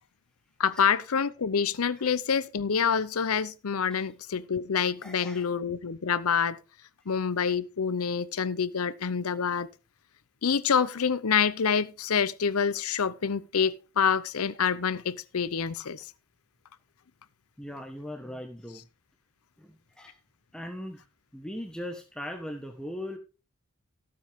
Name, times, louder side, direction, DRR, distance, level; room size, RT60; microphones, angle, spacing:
voice 1, 0.6-6.6 7.1-9.7 10.4-16.0, left 6 dB, 90° left, 0.7 m, -27 dB
voice 2, 5.0-5.5 17.6-18.8 19.6-20.2 20.5-21.0 21.3-23.2, left 1 dB, 5° left, 1.4 m, -39 dB
17.0 x 7.7 x 3.6 m
head